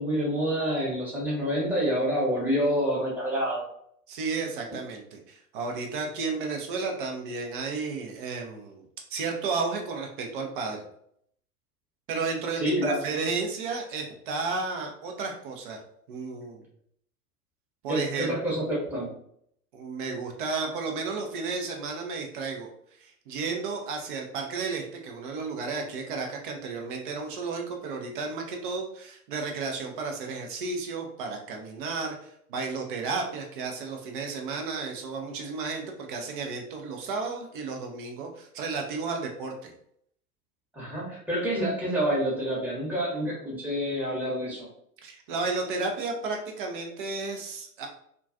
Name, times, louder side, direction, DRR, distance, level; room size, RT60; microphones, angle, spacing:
voice 1, 0.0-3.6 12.6-13.0 17.9-19.1 40.7-44.7, equal, 5° right, -6 dB, 0.8 m, -27 dB
voice 2, 4.1-8.8 9.1-10.8 12.1-15.8 16.1-16.6 17.8-18.3 19.7-22.7 23.0-39.7 45.0-47.9, right 4 dB, 35° right, 2 dB, 0.4 m, -33 dB
2.3 x 2.2 x 2.4 m, 0.69 s
figure-of-eight pair, 100°, 46 cm